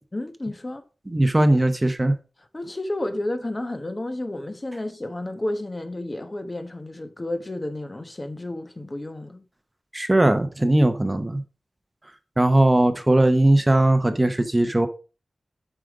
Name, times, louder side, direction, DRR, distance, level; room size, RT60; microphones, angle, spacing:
voice 1, 0.1-0.8 2.5-9.4, left 1 dB, 30° left, 1.0 m, -31 dB
voice 2, 1.1-2.1 9.9-11.4 12.4-14.9, right 1 dB, 20° right, 0.9 m, -19 dB
7.7 x 5.1 x 4.8 m
wide cardioid pair, 85°, 0 cm